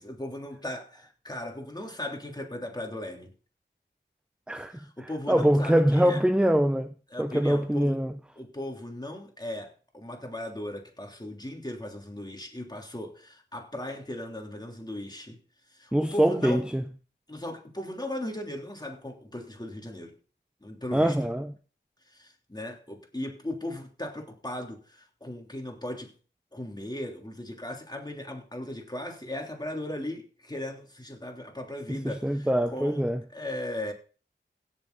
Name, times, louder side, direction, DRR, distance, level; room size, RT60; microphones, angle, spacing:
voice 1, 0.0-3.3 4.7-6.2 7.1-8.0 8.4-15.4 15.7-16.6 17.3-20.1 20.6-21.1 22.1-26.1 26.5-33.0 33.3-33.9, left 1 dB, 20° left, 3.3 m, -37 dB
voice 2, 4.5-8.1 15.9-16.8 20.9-21.5 31.9-33.2, equal, 5° right, 0.7 m, -24 dB
16.5 x 7.2 x 4.1 m
cardioid pair, 40°, 20 cm